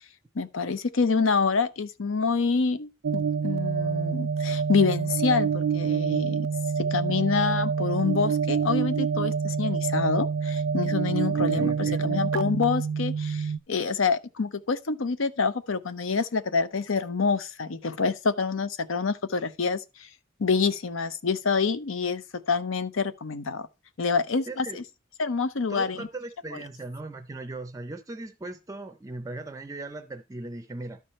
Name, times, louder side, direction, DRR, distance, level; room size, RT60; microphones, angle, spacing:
voice 1, 0.4-6.5 6.8-20.1 20.4-23.7 24.0-24.8 25.2-26.1, left 4 dB, 80° left, 0.7 m, -27 dB
sound 1, 3.0-13.6, right 6 dB, 85° right, 0.5 m, -27 dB
voice 2, 11.0-12.2 24.5-24.8 25.7-31.0, right 2 dB, 15° right, 0.5 m, -38 dB
12.0 x 4.7 x 4.2 m
head